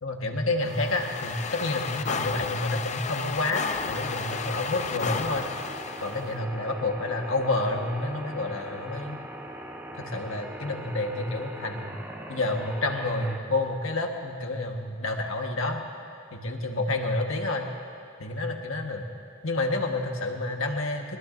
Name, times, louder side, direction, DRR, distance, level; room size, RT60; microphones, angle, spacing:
voice 1, 0.0-5.5 6.0-9.2 10.0-11.9 12.3-15.8 16.3-17.7 18.2-19.1 19.4-21.2, left 2 dB, 85° left, 2 dB, 1.5 m, -29 dB
sound 1, 0.6-6.3, left 5 dB, 35° left, 0.6 m, -33 dB
sound 2, 3.7-13.4, right 1 dB, 10° right, 1.0 m, -41 dB
22.5 x 20.5 x 2.6 m, 2.4 s
head